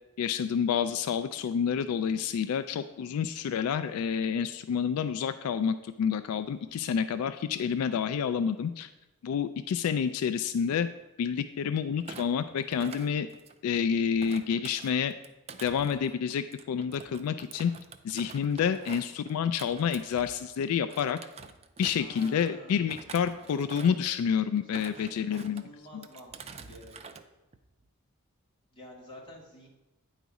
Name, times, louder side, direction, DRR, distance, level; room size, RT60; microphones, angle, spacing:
voice 1, 0.2-8.9 9.2-10.9 11.2-13.3 13.6-15.1 15.6-17.7 18.0-21.2 21.8-25.6, left 7 dB, 75° left, 13 dB, 0.3 m, -29 dB
voice 2, 6.6-7.0 8.0-8.5 22.0-23.0 24.6-27.1 28.7-29.7, equal, 25° left, -5 dB, 2.0 m, -50 dB
Thump thud, 12.0-13.8 14.2-20.6 20.9-22.5 22.9-24.1 24.6-25.6 26.0-27.2 27.5-27.9, right 5 dB, 30° right, 0.4 m, -47 dB
9.2 x 4.0 x 4.8 m, 1.0 s
head